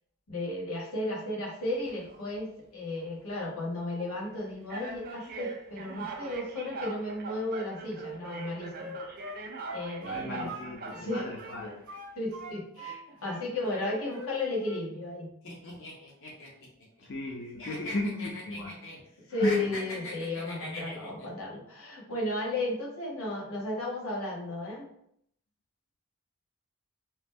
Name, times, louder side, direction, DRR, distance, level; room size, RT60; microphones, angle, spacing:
voice 1, 0.3-8.9 9.7-10.5 10.9-11.3 12.2-15.3 19.3-24.9, left 2 dB, 90° left, -3 dB, 1.1 m, -34 dB
sound 1, 1.7-2.2 2.9-3.1 4.0-4.1 4.7-12.0, right 3 dB, 45° right, 0.4 m, -42 dB
Wind instrument woodwind instrument, 7.9-11.1 11.4-13.0 13.2-14.3 14.6-14.9, right 2 dB, 60° right, 0.8 m, -42 dB
voice 2, 10.0-11.7 17.0-18.7 19.3-19.7, left 2 dB, 50° left, -1 dB, 0.4 m, -35 dB
sound 2, 15.4-17.3 17.6-19.0 19.3-21.3, left 1 dB, 65° left, 0.8 m, -40 dB
2.8 x 2.0 x 3.5 m, 0.70 s
head